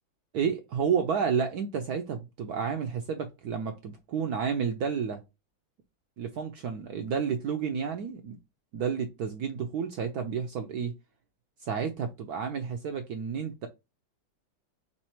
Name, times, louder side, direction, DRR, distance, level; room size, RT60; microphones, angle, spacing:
voice 1, 0.3-5.2 6.2-8.4 8.7-11.0 11.6-13.7, right 6 dB, 80° right, 0.8 m, -31 dB
4.3 x 4.0 x 3.0 m
omnidirectional pair, 2.3 m